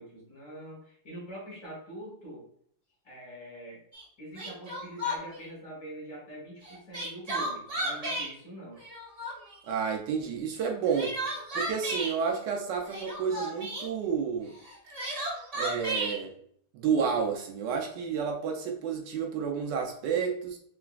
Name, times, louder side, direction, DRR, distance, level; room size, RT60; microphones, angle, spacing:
voice 1, 0.0-2.5 3.0-3.8 4.2-8.8, right 1 dB, 50° left, -4 dB, 1.4 m, -44 dB
Crying sobbing, 3.9-4.0 4.3-5.4 6.6-8.3 8.8-9.6 10.6-12.1 12.8-13.9 14.6-16.2, right 1 dB, 35° right, 0.6 m, -33 dB
voice 2, 9.7-11.2 11.5-14.6 15.5-16.3 16.7-20.6, right 6 dB, 75° right, 2 dB, 1.2 m, -30 dB
3.9 x 3.3 x 2.3 m, 0.65 s
omnidirectional pair, 2.0 m